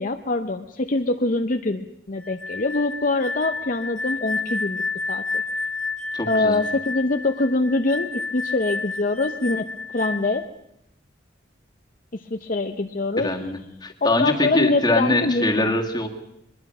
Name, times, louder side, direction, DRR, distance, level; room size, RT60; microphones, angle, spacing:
voice 1, 0.0-4.8 5.1-5.4 6.3-10.5 12.1-13.3 14.0-15.7, left 2 dB, 45° left, 6 dB, 0.7 m, -24 dB
sound 1, 2.2-10.4, left 3 dB, 5° left, 1.3 m, -30 dB
voice 2, 6.1-6.6 13.2-16.1, left 1 dB, 20° left, 2 dB, 2.0 m, -23 dB
22.5 x 21.5 x 6.1 m, 0.83 s
head